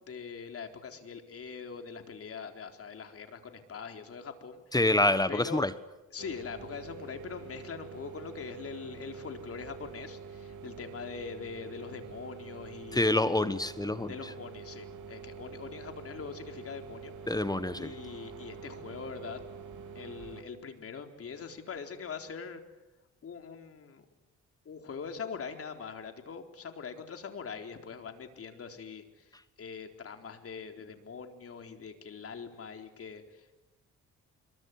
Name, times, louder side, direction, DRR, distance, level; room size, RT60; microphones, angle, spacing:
voice 1, 0.0-4.8 5.3-5.7 6.1-13.1 14.1-17.1 17.8-19.4 19.9-22.6 23.2-24.0 24.6-33.6, left 6 dB, 50° left, 5 dB, 4.2 m, -43 dB
voice 2, 4.7-5.7 12.9-14.1 17.3-17.9, left 2 dB, 15° left, 13 dB, 1.3 m, -27 dB
sound 1, 6.2-20.4, right 5 dB, 75° right, 3.4 m, -46 dB
26.5 x 23.0 x 9.9 m, 1.0 s
cardioid pair, 90°, 30 cm